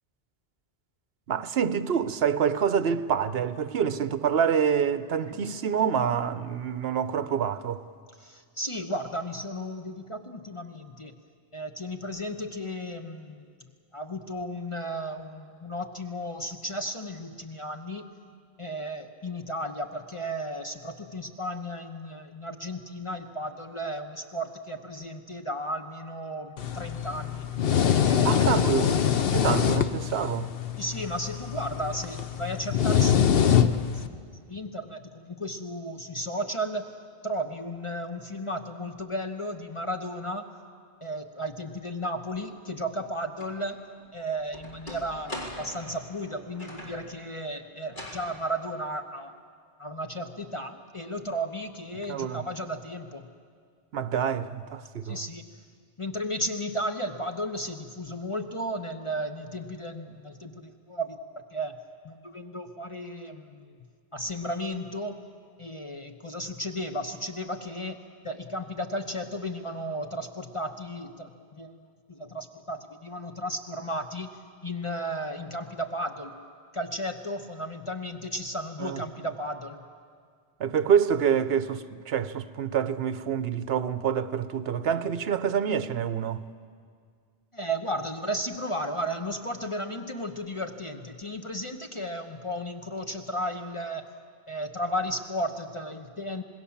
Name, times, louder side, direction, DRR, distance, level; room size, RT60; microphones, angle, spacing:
voice 1, 1.3-7.8 28.2-30.5 52.1-52.4 53.9-55.2 78.8-79.0 80.6-86.5, right 7 dB, 65° right, 1.0 m, -27 dB
voice 2, 8.2-11.1 11.5-18.1 18.6-27.4 27.8-28.6 30.8-34.2 34.5-36.9 37.2-40.5 41.0-43.8 44.1-49.3 49.8-53.3 55.0-55.4 56.0-61.8 62.0-63.8 64.1-65.2 65.6-71.8 72.1-76.4 76.7-79.8 87.5-94.1 94.5-96.4, equal, 30° left, 1.0 m, -34 dB
sound 1, 26.6-34.1, left 8 dB, 60° left, 1.0 m, -24 dB
sound 2, 43.4-43.5 44.0-47.0 47.9-48.3, left 1 dB, 45° left, 4.1 m, -41 dB
27.0 x 19.5 x 7.2 m
omnidirectional pair, 1.1 m